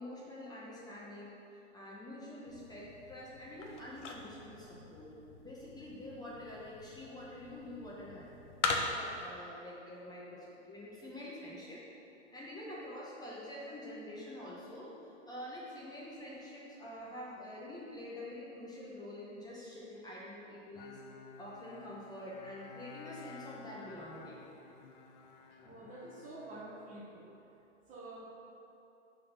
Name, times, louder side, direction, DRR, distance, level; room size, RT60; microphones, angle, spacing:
voice 1, 0.0-8.3 8.6-11.8 12.3-21.0 21.4-24.5, left 1 dB, 10° left, -6 dB, 0.8 m, -47 dB
sound 1, 2.5-9.3, left 3 dB, 70° left, 0.8 m, -41 dB
Bowed string instrument, 20.7-27.4, left 5 dB, 40° left, 0.5 m, -53 dB
voice 2, 25.6-27.3 27.9-28.4, right 2 dB, 20° right, -3 dB, 0.8 m, -48 dB
5.5 x 3.7 x 5.4 m, 2.9 s
figure-of-eight pair, 110°, 38 cm